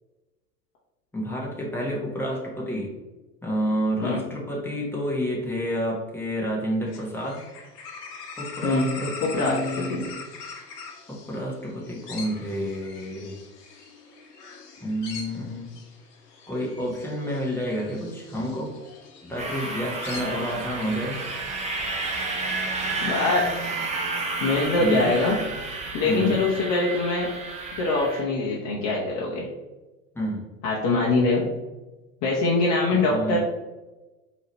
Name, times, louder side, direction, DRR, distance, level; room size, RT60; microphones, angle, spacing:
voice 1, 1.1-2.9 3.4-7.4 8.4-10.1 11.1-13.4 14.8-15.7 16.5-18.7 19.2-21.2 24.8-25.1 26.0-26.5 30.1-30.4 32.9-33.4, equal, 5° left, -3 dB, 1.2 m, -29 dB
sound 1, 6.9-22.6, left 5 dB, 65° left, 1.0 m, -43 dB
voice 2, 9.2-9.6 9.9-10.0 20.2-20.3 23.0-23.4 24.4-25.4 25.9-27.3 27.8-29.5 30.6-31.5 32.2-33.4, left 3 dB, 35° left, -4 dB, 0.9 m, -23 dB
sound 2, 19.4-28.2, right 3 dB, 15° right, 0.5 m, -31 dB
4.7 x 3.0 x 3.1 m, 1.1 s
hypercardioid pair, 95°, 49 cm